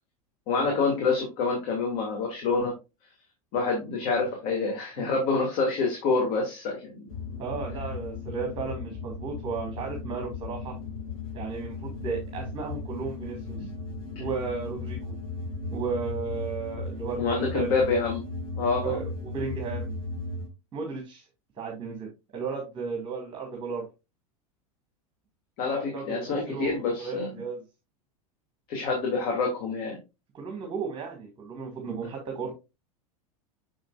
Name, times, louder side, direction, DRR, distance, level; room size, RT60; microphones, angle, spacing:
voice 1, 0.5-2.7 3.5-7.1 17.2-18.2 18.6-19.0 25.6-27.3 28.7-30.0, left 4 dB, 50° left, 0 dB, 2.4 m, -27 dB
sound 1, 7.1-20.5, left 3 dB, 70° left, 3.7 m, -36 dB
voice 2, 7.4-10.7 11.3-13.7 14.2-15.1 15.7-17.8 18.8-20.0 20.7-21.2 21.6-23.9 25.7-27.6 30.3-32.5, right 5 dB, 25° right, 0 dB, 2.1 m, -34 dB
6.7 x 6.3 x 2.5 m, 0.26 s
hypercardioid pair, 90°, 19 cm